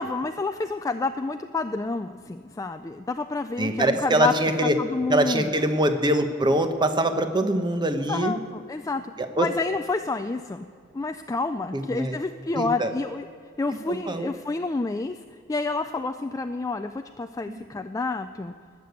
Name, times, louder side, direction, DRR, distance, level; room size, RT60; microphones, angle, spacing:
voice 1, 0.0-5.5 8.1-9.0 9.4-10.7 10.9-13.3 13.6-15.2 15.5-18.5, left 3 dB, 15° left, 7 dB, 0.3 m, -29 dB
voice 2, 3.6-4.7 5.1-8.3 9.2-9.5 11.7-12.2 12.5-12.9 13.7-14.3 17.5-17.6, right 1 dB, 20° right, 8 dB, 1.0 m, -24 dB
20.0 x 6.8 x 8.1 m, 2.3 s
head